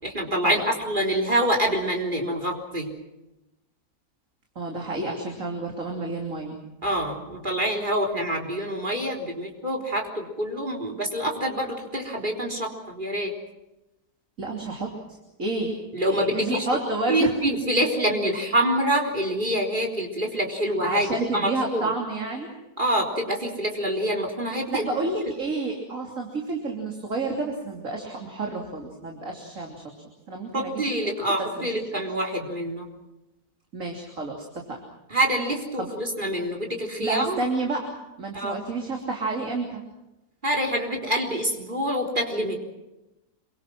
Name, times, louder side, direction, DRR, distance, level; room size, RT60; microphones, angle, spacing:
voice 1, 0.0-2.9 6.8-13.3 15.9-16.7 17.1-21.1 21.3-21.8 22.8-24.9 30.5-32.8 35.1-37.4 38.3-38.6 40.4-42.6, right 1 dB, 30° right, 2 dB, 4.0 m, -26 dB
voice 2, 4.5-6.6 14.4-14.9 15.4-15.7 16.1-17.4 20.8-22.5 24.5-29.8 30.3-30.8 31.6-32.0 33.7-34.8 35.8-35.9 37.0-39.8, right 3 dB, 55° right, 1 dB, 3.5 m, -30 dB
27.0 x 23.5 x 6.1 m, 0.96 s
omnidirectional pair, 1.6 m